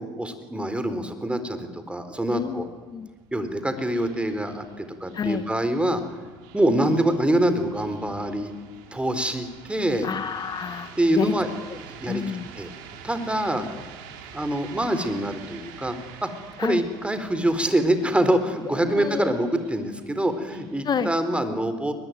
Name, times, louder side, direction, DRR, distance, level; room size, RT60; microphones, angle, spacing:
voice 1, 0.0-2.7 3.3-6.0 6.5-8.5 8.9-10.1 11.0-11.5 12.0-12.2 12.6-12.7 13.0-13.7 14.3-16.0 16.2-16.3 16.6-21.9, right 1 dB, 10° right, 9 dB, 4.1 m, -25 dB
sound 1, 1.8-20.8, right 7 dB, 80° right, 3.3 m, -46 dB
voice 2, 2.3-3.1 5.1-5.5 6.6-6.8 10.0-11.4 11.7-11.8 12.1-12.5 16.6-16.8 18.8-19.4 20.8-21.1, left 7 dB, 45° left, 11 dB, 1.4 m, -29 dB
22.0 x 20.5 x 9.4 m, 1.3 s
hypercardioid pair, 65°, 10 cm